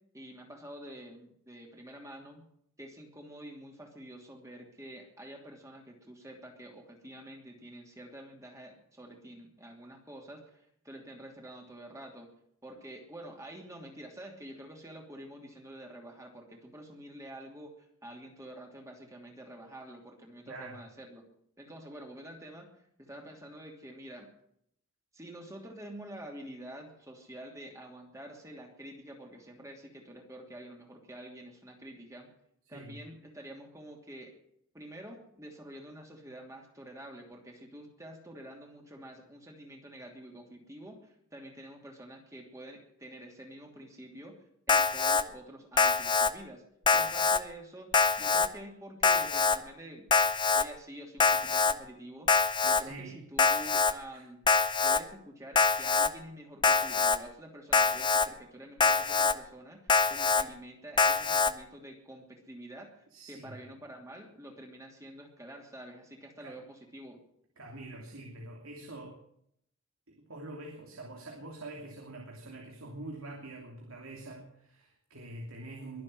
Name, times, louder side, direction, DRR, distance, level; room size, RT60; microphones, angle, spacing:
voice 1, 0.1-2.5 2.8-12.3 12.6-21.2 21.6-22.7 23.0-24.3 25.1-32.3 32.7-34.3 34.7-44.4 44.7-46.6 46.9-47.9 48.2-50.1 50.5-54.4 54.8-67.2, right 1 dB, 15° right, 1 dB, 2.9 m, -48 dB
voice 2, 20.5-20.8 32.7-33.0 52.7-53.2 54.1-54.2 63.1-63.6 66.4-66.6 67.6-69.2 70.2-76.0, right 2 dB, 75° right, 0 dB, 3.0 m, -45 dB
Alarm, 44.7-45.2 45.8-46.3 46.9-47.4 47.9-48.5 49.0-49.6 50.1-50.6 51.2-51.7 52.3-52.8 53.4-53.9 54.5-55.0 55.6-56.1 56.6-57.2 57.7-58.3 58.8-59.3 59.9-60.4 61.0-61.5, left 4 dB, 20° left, 0.6 m, -24 dB
22.5 x 7.6 x 7.8 m, 0.71 s
head